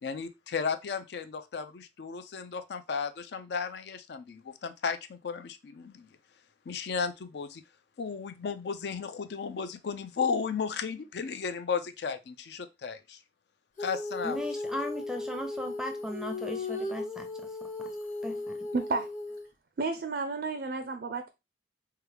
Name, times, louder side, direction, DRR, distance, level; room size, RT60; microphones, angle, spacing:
voice 1, 0.0-6.1 6.7-7.6 8.0-13.2 13.8-14.4, left 5 dB, 65° left, 0.4 m, -34 dB
Female singing, 13.8-19.5, left 2 dB, 40° left, 0.9 m, -36 dB
voice 2, 14.2-17.9 18.2-18.7, left 1 dB, 5° right, 0.5 m, -38 dB
voice 3, 18.7-19.1 19.8-21.3, right 4 dB, 55° right, 0.4 m, -31 dB
4.6 x 2.3 x 3.2 m
head